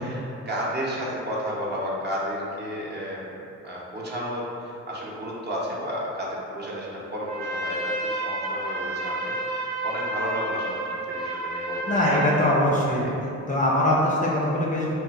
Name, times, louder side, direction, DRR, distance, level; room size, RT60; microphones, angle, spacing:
voice 1, 0.0-3.3 3.6-12.4 12.6-12.8, equal, 35° right, -4 dB, 0.7 m, -32 dB
Trumpet, 7.2-12.7, right 1 dB, 70° right, 0.7 m, -30 dB
voice 2, 11.9-13.0 13.5-14.9, left 1 dB, 25° left, -4 dB, 0.5 m, -22 dB
3.3 x 2.8 x 2.3 m, 2.7 s
cardioid pair, 90°, 30 cm